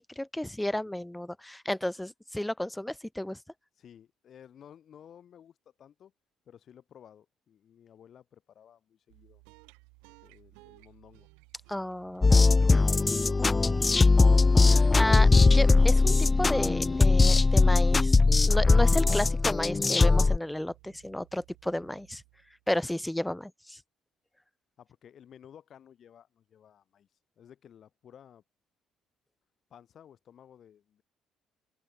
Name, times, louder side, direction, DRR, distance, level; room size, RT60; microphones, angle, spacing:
voice 1, 0.0-3.4 11.7-12.3 14.6-18.2 18.5-22.2 22.7-23.8, left 1 dB, 5° left, 2.2 m, -32 dB
voice 2, 3.8-6.1 6.5-9.4 10.1-11.3 12.3-14.3 24.8-27.1 27.4-28.4 29.7-31.0, left 9 dB, 55° left, 5.8 m, -54 dB
sound 1, 9.1-22.7, right 34 dB, 80° right, 5.5 m, -58 dB
sound 2, 12.2-20.4, left 3 dB, 25° left, 0.3 m, -20 dB
open air
hypercardioid pair, 55°, 0 cm